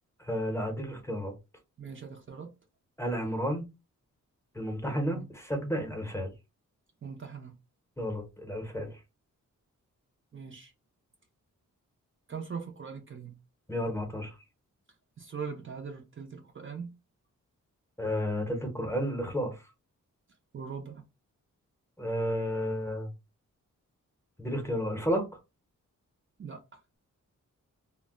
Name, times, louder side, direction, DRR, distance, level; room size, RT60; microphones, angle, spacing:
voice 1, 0.2-1.3 3.0-3.7 4.5-6.3 8.0-9.0 13.7-14.4 18.0-19.6 22.0-23.1 24.4-25.3, equal, 10° left, 0.7 m, -32 dB
voice 2, 1.8-2.5 5.1-5.3 7.0-7.6 10.3-10.7 12.3-13.4 15.2-16.9 20.5-21.0 26.4-26.8, right 6 dB, 40° right, 0.5 m, -41 dB
2.2 x 2.1 x 3.5 m
wide cardioid pair, 135°, 31 cm